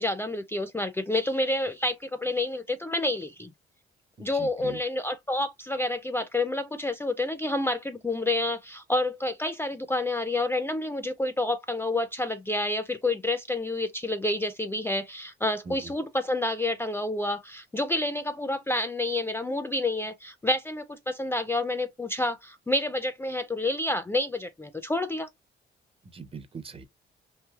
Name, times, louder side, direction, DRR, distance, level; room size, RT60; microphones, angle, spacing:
voice 1, 0.0-3.5 4.2-25.3, left 2 dB, 10° left, 0.4 m, -29 dB
voice 2, 4.2-4.8 15.7-15.9 26.1-26.8, right 5 dB, 30° right, 0.7 m, -41 dB
3.1 x 2.8 x 2.2 m
cardioid pair, 90°, 20 cm